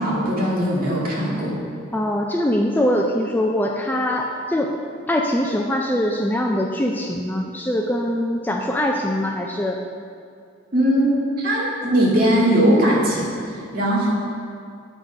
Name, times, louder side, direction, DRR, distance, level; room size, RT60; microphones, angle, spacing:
voice 1, 0.0-1.6 10.7-14.1, right 1 dB, 45° right, -5 dB, 2.1 m, -20 dB
voice 2, 1.9-4.7 5.1-9.8, left 1 dB, 10° left, 1 dB, 0.4 m, -22 dB
7.9 x 6.2 x 5.1 m, 2.3 s
head